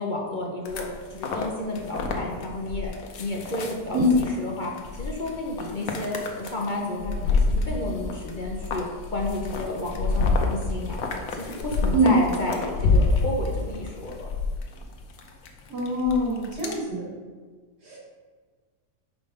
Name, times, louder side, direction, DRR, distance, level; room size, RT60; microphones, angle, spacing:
voice 1, 0.0-2.9 3.2-11.0 11.3-14.3, left 2 dB, 45° left, -1 dB, 0.6 m, -32 dB
sound 1, 0.6-16.8, left 3 dB, 70° left, 1.3 m, -28 dB
voice 2, 15.7-17.1 17.8-18.0, equal, 80° right, -5 dB, 2.6 m, -23 dB
5.1 x 4.8 x 5.3 m, 1.5 s
omnidirectional pair, 1.7 m